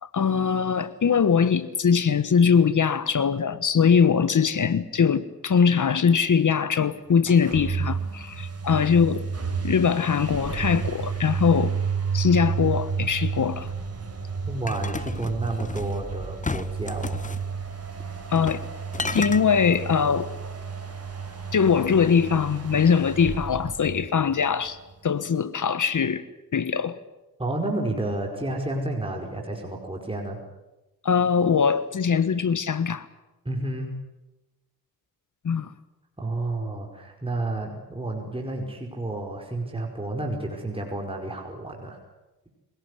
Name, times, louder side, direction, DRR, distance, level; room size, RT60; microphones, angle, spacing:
voice 1, 0.0-9.3 9.6-11.8 12.1-13.7 18.3-18.6 19.1-20.3 21.5-26.2 26.5-27.0 31.0-33.1 35.4-35.7, left 6 dB, 50° left, 1.4 m, -22 dB
sound 1, 7.2-24.7, right 5 dB, 40° right, 5.6 m, -31 dB
voice 2, 14.4-17.2 27.4-30.4 33.4-33.9 36.2-42.0, right 2 dB, 15° right, 5.1 m, -30 dB
sound 2, 14.7-16.0 16.4-17.4 18.4-18.7 18.9-19.4, left 3 dB, 20° left, 1.1 m, -32 dB
24.0 x 18.0 x 10.0 m
cardioid pair, 65°, 39 cm